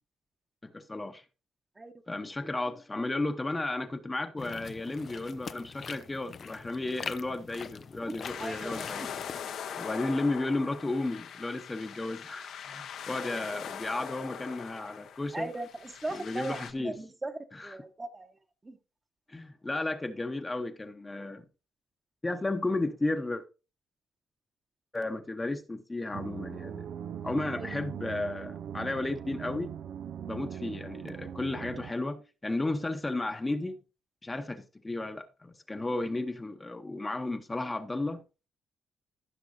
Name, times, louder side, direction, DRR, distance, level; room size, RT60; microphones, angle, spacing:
voice 1, 0.6-1.2 2.1-9.1 9.7-15.5 16.1-17.0 17.5-17.8 19.3-21.5 22.2-23.4 24.9-26.9 27.2-29.7 30.2-33.8 34.2-38.2, left 2 dB, 20° left, 1.0 m, -33 dB
sound 1, 4.4-9.4, left 6 dB, 50° left, 0.5 m, -43 dB
sound 2, 8.2-16.7, left 8 dB, 75° left, 1.1 m, -41 dB
voice 2, 8.4-9.1 15.3-18.3 18.6-18.8 27.6-27.7, right 2 dB, 20° right, 1.1 m, -38 dB
sound 3, 26.1-31.9, right 9 dB, 70° right, 0.5 m, -40 dB
15.5 x 5.9 x 2.7 m
cardioid pair, 90°, 0 cm